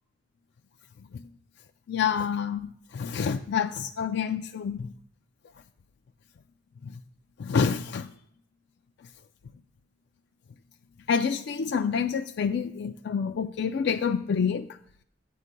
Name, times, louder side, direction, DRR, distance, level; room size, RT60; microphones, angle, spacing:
voice 1, 1.9-4.9 6.8-6.9 7.4-8.1 11.1-14.7, left 6 dB, 65° left, 7 dB, 0.4 m, -28 dB
14.0 x 9.3 x 2.2 m, 0.67 s
head